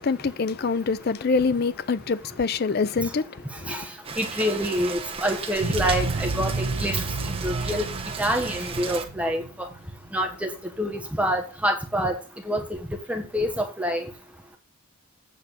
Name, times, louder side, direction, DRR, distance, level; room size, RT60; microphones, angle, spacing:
voice 1, 0.0-3.9, left 4 dB, 45° left, 0.4 m, -25 dB
Rain, 4.0-9.0, right 5 dB, 25° right, 1.0 m, -35 dB
voice 2, 4.2-7.1 7.4-7.8 8.2-9.7 10.1-10.5 10.8-12.2 12.4-12.8 13.1-14.1, equal, 5° right, 1.1 m, -26 dB
sound 1, 5.6-10.4, right 3 dB, 70° right, 0.8 m, -31 dB
8.3 x 4.2 x 6.9 m
head